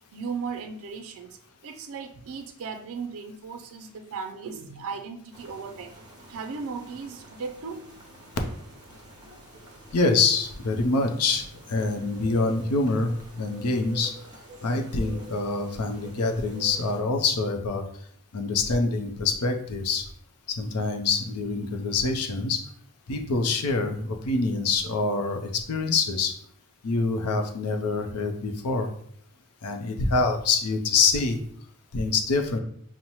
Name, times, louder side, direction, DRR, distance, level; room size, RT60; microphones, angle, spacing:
voice 1, 0.1-1.4 1.6-5.9 6.3-7.8, right 5 dB, 65° right, 6 dB, 0.4 m, -36 dB
sound 1, 5.3-17.0, right 1 dB, 20° right, 0.7 m, -47 dB
voice 2, 9.9-13.1 13.4-14.1 14.6-17.8 18.3-20.0 20.6-22.6 23.1-26.3 26.8-28.9 29.6-31.4 31.9-32.6, left 3 dB, 80° left, 5 dB, 0.6 m, -25 dB
5.4 x 2.1 x 2.9 m, 0.63 s
head